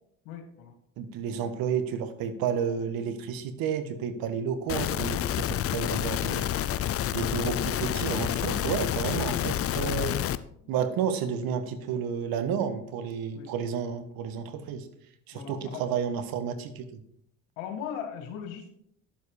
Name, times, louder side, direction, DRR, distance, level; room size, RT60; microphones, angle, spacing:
voice 1, 0.3-0.7 10.6-10.8 13.3-13.5 15.3-15.8 17.6-18.7, left 8 dB, 85° left, 5 dB, 2.2 m, -38 dB
voice 2, 1.0-6.5 7.1-10.2 10.7-14.9 15.3-17.0, right 7 dB, 70° right, 10 dB, 1.5 m, -31 dB
sound 1, 4.7-10.4, left 11 dB, 40° left, 0.6 m, -29 dB
11.0 x 7.4 x 5.0 m, 0.70 s
supercardioid pair, 90°, 37 cm